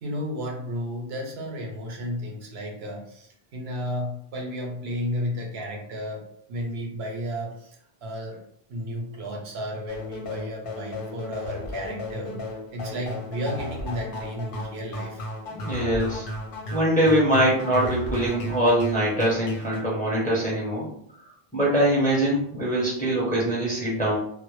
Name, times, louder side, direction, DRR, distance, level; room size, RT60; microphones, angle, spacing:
voice 1, 0.0-8.4 8.7-15.3, equal, 80° right, 1 dB, 0.9 m, -33 dB
sound 1, 9.9-19.8, left 1 dB, 65° left, 0.7 m, -34 dB
voice 2, 15.5-16.3 16.7-20.9 21.5-24.2, right 1 dB, 10° left, -6 dB, 0.6 m, -23 dB
2.0 x 2.0 x 3.0 m, 0.69 s
omnidirectional pair, 1.0 m